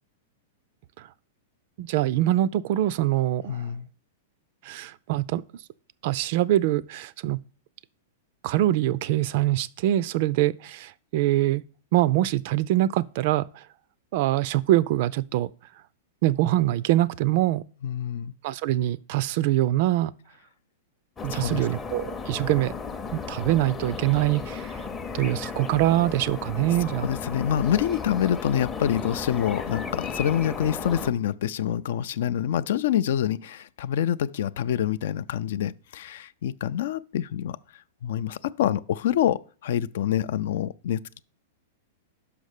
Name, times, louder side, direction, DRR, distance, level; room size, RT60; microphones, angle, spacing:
voice 1, 1.8-3.6 4.6-5.4 6.0-7.4 8.4-11.6 11.9-13.5 14.1-15.5 16.2-17.6 18.4-20.1 21.2-22.7 23.1-24.8 25.1-27.1, right 14 dB, 50° right, 0.3 m, -24 dB
voice 2, 3.5-3.9 17.8-18.3 21.3-21.7 26.8-41.2, left 10 dB, 65° left, 0.4 m, -26 dB
sound 1, 21.2-31.1, left 5 dB, 15° left, 0.6 m, -35 dB
5.7 x 5.3 x 6.5 m
supercardioid pair, 150°, 0 cm